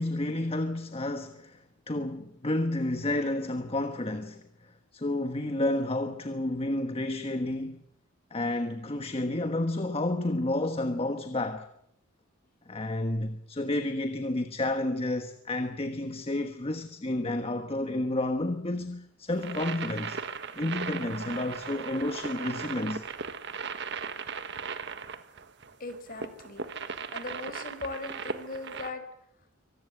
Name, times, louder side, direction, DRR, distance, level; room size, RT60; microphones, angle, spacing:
voice 1, 0.0-7.8 8.3-11.7 12.7-20.2 20.5-23.0, left 1 dB, 30° left, 1.3 m, -31 dB
sound 1, 19.3-28.9, right 5 dB, 60° right, 1.5 m, -37 dB
voice 2, 25.8-26.7 27.1-29.0, left 3 dB, 45° left, 4.9 m, -39 dB
25.0 x 19.0 x 8.0 m
head